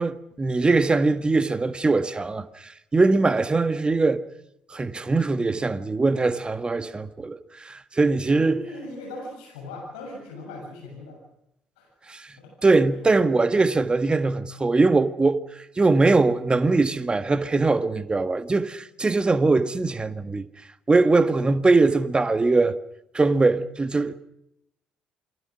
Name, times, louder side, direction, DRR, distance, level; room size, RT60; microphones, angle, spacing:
voice 1, 0.0-4.2 4.7-8.6 12.1-12.3 12.6-15.4 15.8-20.5 20.9-22.8 23.1-24.1, right 3 dB, 25° right, 1.7 m, -21 dB
voice 2, 8.2-11.2 11.8-11.9 12.4-12.5, left 1 dB, 75° left, 7.2 m, -38 dB
28.5 x 22.5 x 6.2 m
figure-of-eight pair, 50°, 4 cm